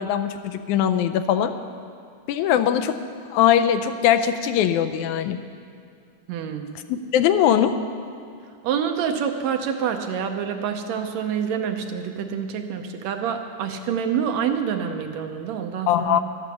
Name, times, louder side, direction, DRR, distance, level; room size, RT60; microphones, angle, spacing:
voice 1, 0.0-1.5 2.3-3.0 3.3-5.4 6.9-7.8 15.9-16.2, left 10 dB, 85° left, 9 dB, 2.0 m, -21 dB
voice 2, 6.3-6.8 8.6-16.2, right 7 dB, 75° right, 6 dB, 1.9 m, -27 dB
12.5 x 9.8 x 7.0 m, 2.3 s
omnidirectional pair, 3.4 m